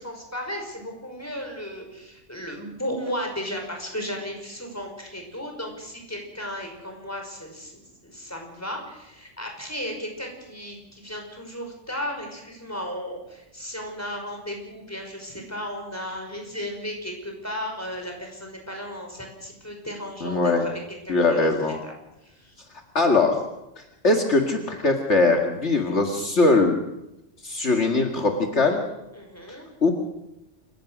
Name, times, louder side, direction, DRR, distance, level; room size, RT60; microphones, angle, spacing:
voice 1, 0.0-21.5 21.8-21.9 22.2-22.5 29.1-29.7, equal, 10° left, 2 dB, 5.4 m, -35 dB
voice 2, 20.2-20.7 21.1-21.8 22.9-23.4 24.0-26.8 27.4-28.8 29.8-29.9, left 3 dB, 65° left, 3 dB, 2.3 m, -21 dB
28.0 x 16.0 x 6.3 m, 0.92 s
omnidirectional pair, 1.3 m